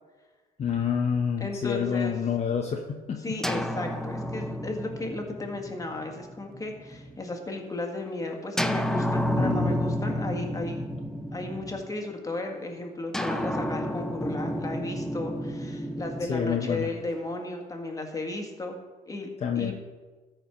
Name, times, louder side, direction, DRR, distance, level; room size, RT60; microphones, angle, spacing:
voice 1, 0.6-3.4 9.4-9.8 16.3-16.9 19.4-19.7, left 7 dB, 40° left, 2 dB, 0.9 m, -28 dB
voice 2, 1.4-2.1 3.2-10.9 11.3-18.8 19.1-19.3 19.6-19.7, left 2 dB, 20° left, 3 dB, 1.7 m, -35 dB
sound 1, 3.4-7.2 8.6-12.1 13.1-17.3, equal, 5° left, 0.6 m, -31 dB
13.5 x 4.6 x 5.8 m, 1.3 s
cardioid pair, 110°, 17 cm